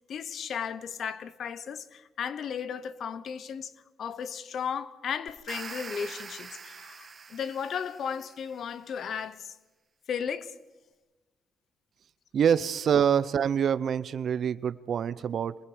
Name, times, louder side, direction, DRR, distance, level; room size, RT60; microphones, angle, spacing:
voice 1, 0.1-3.7 4.0-9.5 10.1-10.5, left 7 dB, 60° left, 1.0 m, -35 dB
sound 1, 5.3-8.5, right 5 dB, 40° right, 1.8 m, -44 dB
voice 2, 12.3-15.6, right 8 dB, 60° right, 0.7 m, -25 dB
27.5 x 21.0 x 5.1 m
cardioid pair, 90°, 0 cm